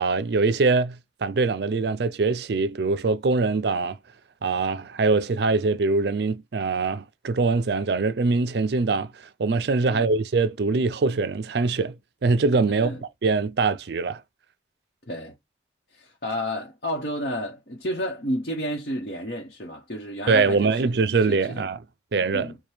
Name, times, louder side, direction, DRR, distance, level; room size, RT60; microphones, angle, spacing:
voice 1, 0.0-4.0 4.4-12.0 12.2-13.0 13.2-14.2 20.3-21.8 22.1-22.5, right 3 dB, 60° right, 0.4 m, -23 dB
voice 2, 12.7-13.0 15.1-15.3 15.9-20.9 21.3-21.7 22.3-22.6, equal, 55° left, 1.0 m, -31 dB
4.5 x 2.2 x 3.4 m
head